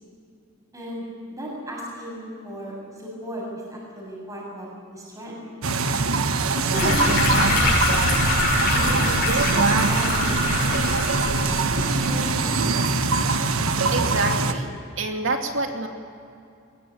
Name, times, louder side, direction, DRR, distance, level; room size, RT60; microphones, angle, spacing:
voice 1, 0.7-3.4 3.7-5.4 6.5-8.2 8.7-12.9, equal, 15° right, -3 dB, 7.3 m, -35 dB
sound 1, 5.6-14.5, right 3 dB, 80° right, 1.3 m, -23 dB
sound 2, 6.7-12.1, left 2 dB, 50° left, 7.2 m, -24 dB
voice 2, 13.9-15.9, right 2 dB, 60° right, 3 dB, 2.7 m, -27 dB
23.0 x 21.0 x 8.7 m, 2.5 s
head